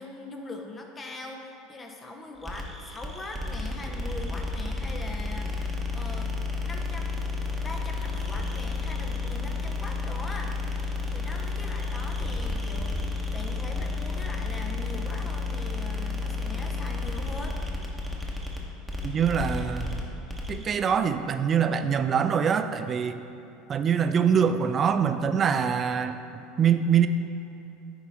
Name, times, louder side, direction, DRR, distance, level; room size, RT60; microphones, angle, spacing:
voice 1, 0.0-6.4 6.6-7.3 7.6-13.0 13.3-17.6, left 2 dB, 30° left, 3 dB, 0.7 m, -41 dB
sound 1, 2.4-20.6, left 3 dB, ahead, 1.0 m, -31 dB
voice 2, 19.0-20.0 20.5-23.2 23.7-27.1, right 7 dB, 35° right, 10 dB, 0.4 m, -24 dB
9.7 x 4.0 x 3.5 m, 2.9 s
hypercardioid pair, 80°, 0 cm